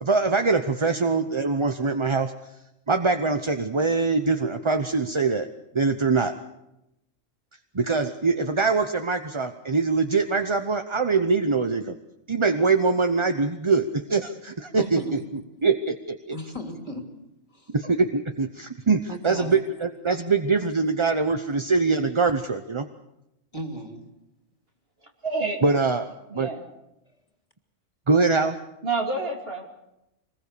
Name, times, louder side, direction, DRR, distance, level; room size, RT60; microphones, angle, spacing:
voice 1, 0.0-2.3 2.9-5.5 5.7-6.3 7.7-12.0 12.3-15.2 15.6-16.4 17.7-22.9 25.6-26.1 26.3-26.5 28.1-28.6, right 4 dB, 25° right, 7 dB, 0.8 m, -23 dB
voice 2, 14.8-15.4 16.3-17.2 17.5-17.7 19.1-19.6 23.5-24.1, left 1 dB, 25° left, 4 dB, 2.8 m, -36 dB
voice 3, 25.2-25.6 26.3-26.7 28.8-29.7, right 3 dB, 45° right, 2 dB, 3.2 m, -28 dB
25.0 x 21.0 x 6.8 m, 0.87 s
omnidirectional pair, 1.4 m